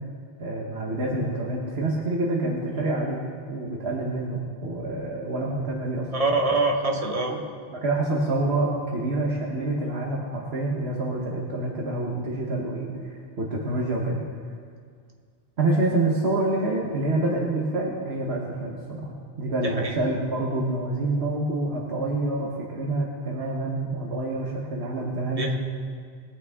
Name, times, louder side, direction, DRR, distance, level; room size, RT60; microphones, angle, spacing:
voice 1, 0.4-3.2 3.5-6.1 7.3-7.4 7.7-14.2 15.6-25.6, right 2 dB, 85° right, -2 dB, 1.6 m, -27 dB
voice 2, 6.1-7.3 19.6-19.9 25.4-25.6, right 2 dB, 35° right, 1 dB, 1.3 m, -24 dB
20.5 x 9.0 x 3.6 m, 2.1 s
omnidirectional pair, 1.0 m